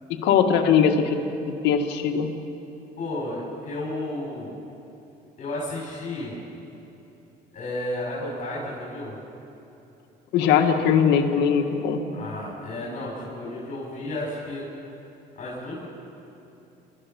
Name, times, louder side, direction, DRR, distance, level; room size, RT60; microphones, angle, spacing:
voice 1, 0.2-1.2 1.6-2.3 10.3-12.0, left 7 dB, 85° left, 4 dB, 1.9 m, -20 dB
voice 2, 3.0-4.5 5.4-6.4 7.5-9.1 12.1-14.6 15.4-15.8, left 1 dB, 50° left, -6 dB, 6.8 m, -32 dB
28.5 x 14.0 x 7.2 m, 3.0 s
cardioid pair, 110°, 17 cm